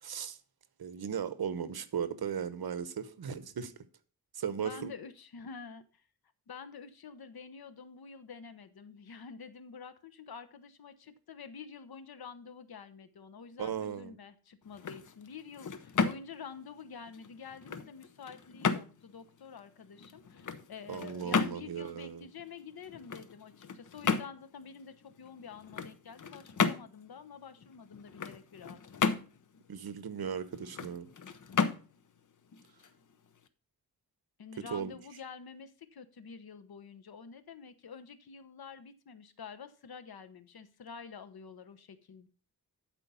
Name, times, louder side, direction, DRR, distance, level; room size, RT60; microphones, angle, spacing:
voice 1, 0.0-0.4 0.8-3.7 4.3-4.9 13.6-14.1 20.9-22.3 29.7-31.1 34.7-35.0, right 7 dB, 80° right, 1.0 m, -37 dB
voice 2, 4.6-6.0 6.5-28.8 34.4-42.3, left 6 dB, 80° left, 1.0 m, -48 dB
sound 1, 14.6-33.5, left 5 dB, 55° left, 0.8 m, -36 dB
11.5 x 4.6 x 5.5 m
wide cardioid pair, 155°, 36 cm